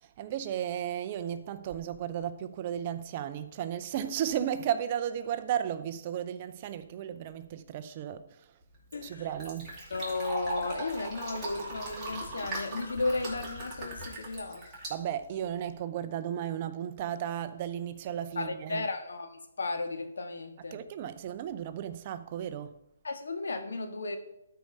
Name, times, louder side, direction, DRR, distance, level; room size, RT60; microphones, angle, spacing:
voice 1, 0.0-8.5 9.0-9.8 14.9-18.9 20.7-22.7, right 10 dB, 30° right, 0.5 m, -34 dB
Fill (with liquid), 8.6-15.7, right 1 dB, 10° right, 2.5 m, -40 dB
voice 2, 8.9-9.2 9.9-14.6 18.3-20.8 23.0-24.2, left 3 dB, 80° left, 1.6 m, -34 dB
12.5 x 4.7 x 5.4 m
hypercardioid pair, 165°, 0 cm